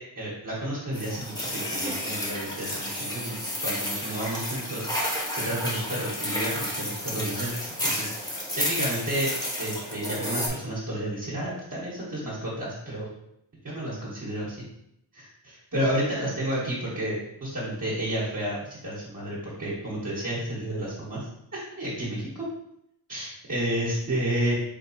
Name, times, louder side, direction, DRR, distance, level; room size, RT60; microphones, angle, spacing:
voice 1, 0.0-3.3 3.6-4.9 5.3-8.1 8.5-9.3 9.6-13.1 13.6-14.6 15.1-21.2 21.5-22.4 23.1-24.5, right 1 dB, 40° right, -8 dB, 1.6 m, -31 dB
sound 1, 0.9-10.5, left 1 dB, 10° left, 1.0 m, -31 dB
4.7 x 3.3 x 3.1 m, 0.78 s
wide cardioid pair, 115°, 47 cm